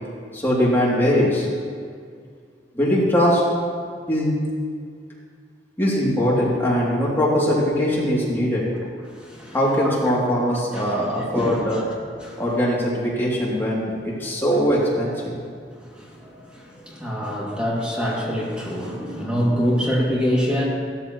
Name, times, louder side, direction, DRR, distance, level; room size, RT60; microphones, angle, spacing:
voice 1, 0.3-1.5 2.7-3.4 4.1-4.3 5.8-8.6 9.5-11.8 12.4-15.3, equal, 15° left, -7 dB, 3.1 m, -21 dB
voice 2, 9.1-9.5 9.8-9.9 10.7-11.1 11.3-11.6 12.2-12.4 15.8-20.7, equal, 5° right, -5 dB, 2.7 m, -25 dB
15.5 x 14.0 x 3.2 m, 2.1 s
head